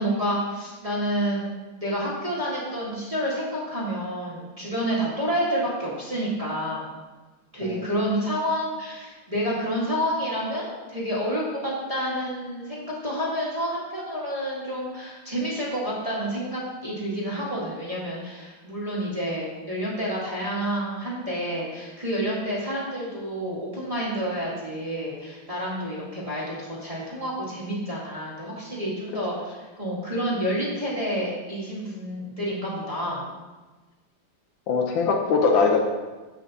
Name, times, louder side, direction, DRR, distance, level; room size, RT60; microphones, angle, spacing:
voice 1, 0.0-1.5 1.8-6.8 7.5-33.2, equal, 20° right, -7 dB, 1.5 m, -29 dB
voice 2, 34.7-35.8, left 4 dB, 80° left, 2 dB, 1.5 m, -21 dB
14.0 x 5.0 x 2.8 m, 1.2 s
omnidirectional pair, 2.1 m